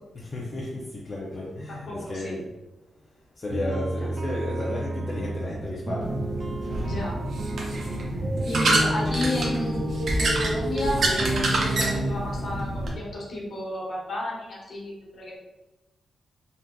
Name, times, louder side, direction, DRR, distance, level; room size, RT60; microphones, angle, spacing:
voice 1, 0.1-2.5 3.4-6.1 6.7-7.0, left 1 dB, 40° left, -4 dB, 0.5 m, -33 dB
voice 2, 2.0-2.3 6.7-7.1 8.5-15.4, left 1 dB, 60° left, -4 dB, 1.3 m, -32 dB
sound 1, 3.5-12.1, right 1 dB, 40° right, 0.4 m, -31 dB
sound 2, 6.0-12.9, right 1 dB, 65° right, 0.7 m, -27 dB
3.4 x 2.6 x 2.3 m, 1.0 s
cardioid pair, 100°, 0 cm